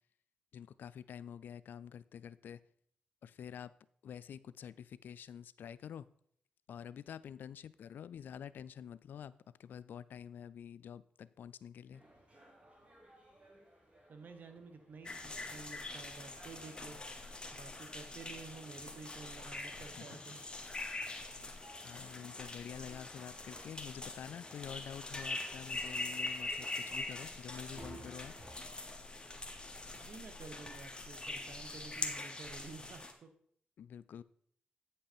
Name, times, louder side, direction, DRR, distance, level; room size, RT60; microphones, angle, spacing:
voice 1, 0.5-2.6 3.2-3.7 4.0-6.1 6.7-9.3 9.6-12.0 19.8-20.3 21.8-28.3 33.8-34.2, left 8 dB, 80° left, 18 dB, 0.3 m, -48 dB
sound 1, 11.9-28.5, right 1 dB, 40° right, 2.5 m, -60 dB
voice 2, 14.1-17.0 17.5-20.4 30.0-33.3, right 4 dB, 70° right, 8 dB, 1.0 m, -51 dB
sound 2, 15.0-33.1, left 2 dB, 30° left, 1.3 m, -43 dB
9.0 x 5.4 x 4.3 m, 0.63 s
cardioid pair, 55°, 3 cm